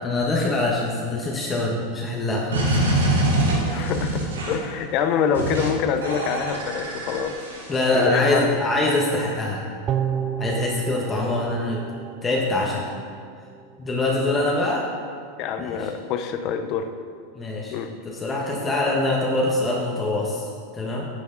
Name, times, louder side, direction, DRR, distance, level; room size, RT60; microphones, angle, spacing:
voice 1, 0.0-3.1 7.7-9.6 10.4-11.9 12.2-12.9 13.8-14.9 15.6-15.9 17.3-17.7 18.0-21.1, left 2 dB, 20° left, -2 dB, 1.4 m, -24 dB
sound 1, 2.5-4.7 5.3-5.7 6.0-7.9, right 1 dB, 90° right, 2.1 m, -24 dB
voice 2, 3.7-7.4 7.9-8.5 15.4-16.9 17.7-17.9, left 7 dB, 50° left, 8 dB, 0.7 m, -26 dB
sound 2, 9.9-13.2 13.6-13.7, right 9 dB, 40° right, 0.4 m, -30 dB
9.6 x 8.4 x 4.0 m, 2.1 s
hypercardioid pair, 105°, 0 cm